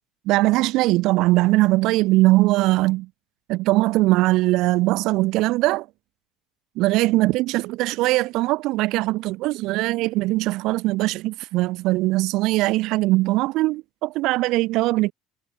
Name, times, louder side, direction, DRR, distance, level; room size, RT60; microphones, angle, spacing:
voice 1, 0.2-3.1 3.5-5.9 6.8-15.1, right 19 dB, 50° right, 3.3 m, -21 dB
cardioid pair, 175°, 0 cm